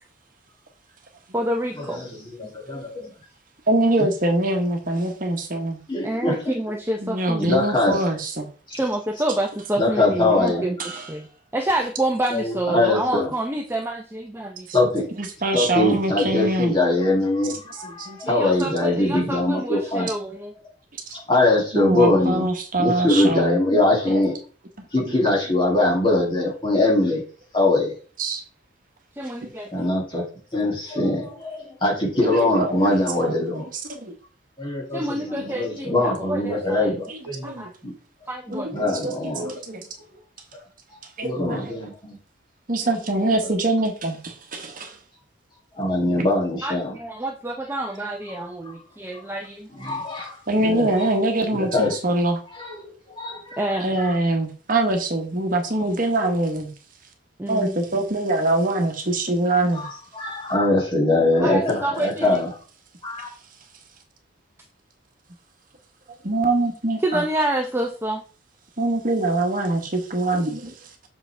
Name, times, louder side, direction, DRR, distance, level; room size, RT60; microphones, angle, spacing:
voice 1, 1.3-2.1 6.0-7.5 8.7-11.3 11.5-14.7 18.3-20.5 29.2-30.0 34.9-37.0 37.4-37.7 38.3-38.7 46.6-49.7 53.6-53.9 57.4-57.8 61.4-62.4 67.0-68.2, right 1 dB, 10° right, 2 dB, 0.6 m, -28 dB
voice 2, 1.9-3.1 4.0-4.1 5.9-6.4 7.4-8.0 8.7-8.8 9.8-10.6 12.3-13.3 14.7-15.1 15.5-20.1 21.1-22.5 22.8-24.4 24.9-27.2 27.5-27.9 29.7-30.2 30.5-33.7 34.6-37.9 38.7-39.5 41.2-42.2 45.8-46.9 49.7-51.1 51.5-52.0 52.5-52.9 53.2-53.6 54.0-54.1 59.7-62.5 63.0-63.3, left 2 dB, 25° left, -3 dB, 2.7 m, -22 dB
voice 3, 3.7-5.8 7.0-8.5 10.8-11.0 15.2-16.8 18.0-18.3 21.7-23.6 24.1-24.2 28.2-28.4 32.3-32.9 33.2-33.6 33.9-34.1 37.1-37.2 37.4-37.7 38.5-38.7 39.0-39.8 41.2-41.8 42.7-44.9 50.5-52.4 53.8-56.7 57.5-59.9 66.2-67.2 68.8-70.7, right 2 dB, 45° right, 4 dB, 1.2 m, -24 dB
7.8 x 5.6 x 3.4 m, 0.39 s
head